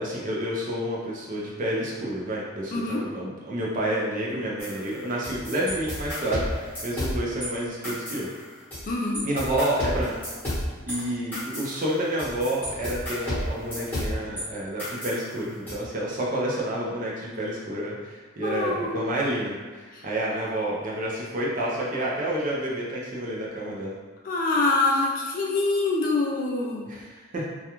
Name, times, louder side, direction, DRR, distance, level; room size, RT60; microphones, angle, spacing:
voice 1, 0.0-8.3 9.2-10.1 10.9-23.9 26.9-27.4, right 1 dB, 40° right, -4 dB, 0.5 m, -29 dB
voice 2, 2.7-3.1 8.9-9.2 18.4-19.0 20.0-20.1 24.2-26.9, left 3 dB, 40° left, -1 dB, 0.3 m, -25 dB
sound 1, 4.6-7.5 7.8-8.9 9.1-14.4 14.8-15.7, equal, 10° left, 0.9 m, -32 dB
2.3 x 2.2 x 2.9 m, 1.5 s
head